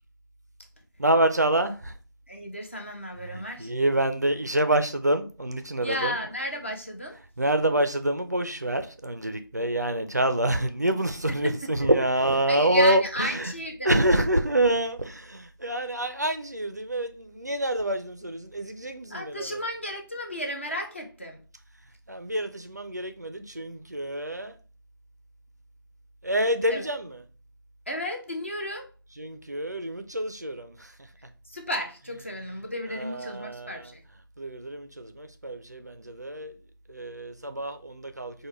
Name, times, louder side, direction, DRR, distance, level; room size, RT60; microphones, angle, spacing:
voice 1, 1.0-1.9 3.3-6.2 7.4-13.5 13.8-19.6 22.1-24.6 26.2-27.2 29.2-30.9 31.2-31.3 32.9-33.9 34.4-36.6 36.9-38.5, right 1 dB, 45° right, 0.4 m, -27 dB
voice 2, 2.3-3.7 5.8-7.2 11.3-11.7 12.5-14.2 19.1-21.4 26.7-26.9 27.9-28.9 31.4-34.0, equal, 30° left, 0.6 m, -33 dB
4.8 x 2.1 x 3.1 m
figure-of-eight pair, 175°, 12 cm